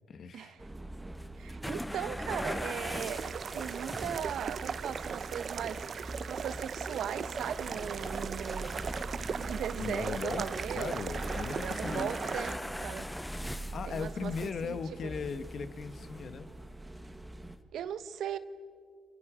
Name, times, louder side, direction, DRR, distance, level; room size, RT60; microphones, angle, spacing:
voice 1, 0.1-0.6 9.8-12.3 13.7-16.5, left 5 dB, 55° left, 1.4 m, -38 dB
sound 1, 0.6-17.6, right 1 dB, 15° right, 1.7 m, -43 dB
sound 2, 1.2-4.4 5.3-6.0 6.5-6.7 7.0-14.5 15.3-15.4 16.1-16.2 17.4-17.5, left 1 dB, 5° left, 0.6 m, -42 dB
voice 2, 1.4-8.9 9.4-10.9 11.6-13.1 13.8-15.1 17.7-18.4, right 9 dB, 70° right, 1.0 m, -38 dB
sound 3, 3.0-12.6, right 6 dB, 50° right, 0.7 m, -38 dB
30.0 x 27.0 x 5.0 m
cardioid pair, 90°, 0 cm